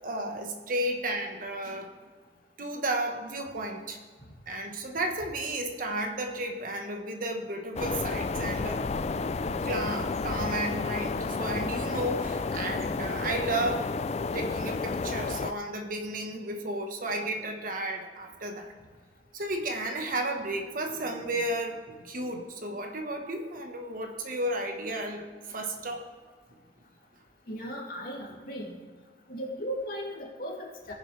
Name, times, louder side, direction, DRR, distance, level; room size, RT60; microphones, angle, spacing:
voice 1, 0.0-1.9 2.6-4.0 4.5-8.8 9.6-13.9 14.3-18.7 19.3-26.0, right 1 dB, 50° right, 3 dB, 1.2 m, -33 dB
sound 1, 7.8-15.5, left 4 dB, 35° left, 0.4 m, -31 dB
voice 2, 27.5-28.8 29.3-30.9, equal, 55° left, -3 dB, 2.6 m, -37 dB
19.5 x 7.5 x 3.3 m, 1.5 s
head